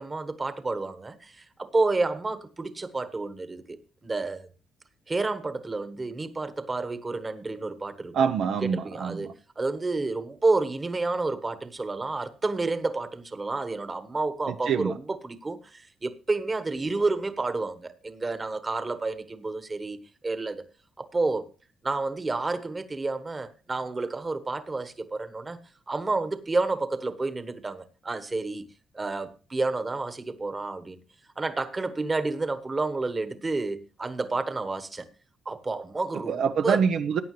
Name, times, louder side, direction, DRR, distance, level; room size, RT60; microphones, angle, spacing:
voice 1, 0.0-3.8 4.0-4.5 5.1-8.1 8.6-9.3 9.6-20.6 21.0-21.4 21.8-25.6 25.9-28.6 28.9-31.0 31.4-35.1 35.4-36.8, right 3 dB, 25° right, 1.3 m, -30 dB
voice 2, 8.1-9.3 14.5-14.9 36.3-37.2, right 7 dB, 70° right, 0.7 m, -25 dB
15.5 x 9.1 x 3.1 m
cardioid pair, 90°, 0 cm